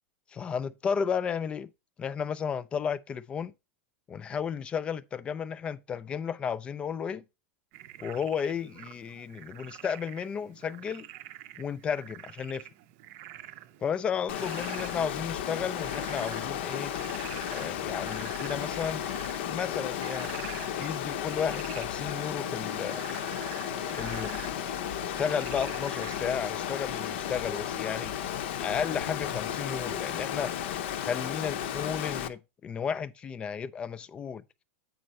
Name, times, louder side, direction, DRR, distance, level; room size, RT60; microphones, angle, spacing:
voice 1, 0.3-1.7 2.0-3.5 4.1-7.2 8.0-11.1 11.6-12.7 13.8-16.9 17.5-19.0 19.5-20.3 20.8-23.0 23.9-24.4 25.0-28.1 28.6-30.5 31.0-34.4, left 7 dB, 15° left, 0.3 m, -33 dB
Frog, 7.7-26.4, right 14 dB, 35° right, 0.6 m, -47 dB
Water, 14.3-32.3, left 10 dB, 55° left, 0.8 m, -34 dB
7.8 x 5.2 x 4.2 m
supercardioid pair, 165°, 7 cm